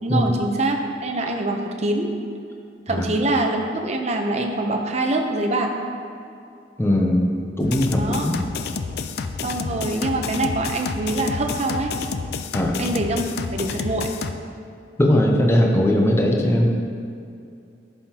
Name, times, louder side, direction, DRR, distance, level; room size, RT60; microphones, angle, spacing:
voice 1, 0.0-2.1 2.9-5.7 8.0-8.3 9.4-11.9 12.8-13.2 13.5-14.1, right 2 dB, 40° right, 3 dB, 0.6 m, -24 dB
voice 2, 6.8-8.4 12.5-12.8 15.0-16.7, left 1 dB, 15° left, 0 dB, 0.6 m, -19 dB
sound 1, 7.6-14.3, left 5 dB, 60° left, 0.4 m, -29 dB
11.0 x 5.6 x 2.9 m, 2.5 s
head